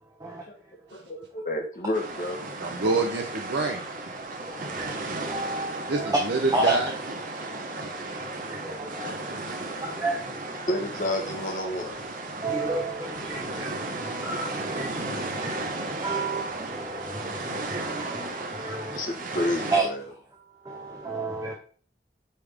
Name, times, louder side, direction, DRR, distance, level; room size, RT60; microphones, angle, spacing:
voice 1, 0.9-2.4 10.7-12.0 16.2-16.3 18.7-20.0, left 1 dB, 45° left, 2 dB, 1.2 m, -30 dB
sound 1, 1.9-19.8, right 2 dB, 45° right, 1.0 m, -35 dB
voice 2, 2.6-3.8 5.9-6.9 7.8-7.9, right 3 dB, 80° right, 2 dB, 0.8 m, -26 dB
voice 3, 4.5-4.9 5.3-6.2 6.5-6.8 8.5-10.6 12.4-19.0 19.7-19.9 20.6-21.5, right 2 dB, 20° right, -1 dB, 0.9 m, -31 dB
8.5 x 3.6 x 3.5 m, 0.42 s
head